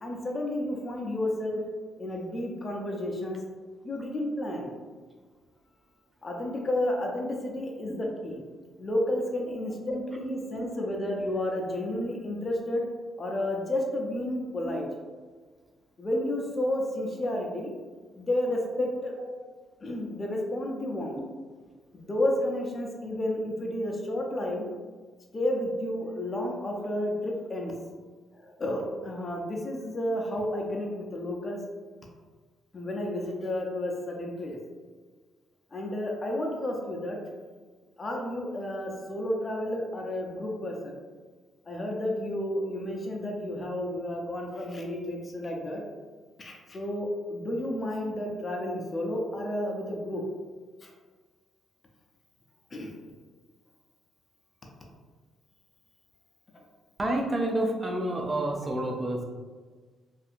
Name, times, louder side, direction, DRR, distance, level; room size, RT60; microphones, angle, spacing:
voice 1, 0.0-1.6 2.0-3.4 3.8-4.7 6.2-8.4 8.8-12.9 13.2-14.8 16.0-17.7 18.2-19.1 19.8-21.2 21.9-24.7 25.3-27.7 28.4-31.6 32.7-34.6 35.7-37.2 38.0-41.0 41.7-45.8 46.4-50.2 50.8-50.9 52.7-52.9, left 1 dB, 30° left, 0 dB, 0.5 m, -31 dB
voice 2, 57.0-59.2, right 1 dB, 25° right, 1 dB, 0.4 m, -29 dB
2.7 x 2.4 x 2.5 m, 1.4 s
cardioid pair, 90°, 0 cm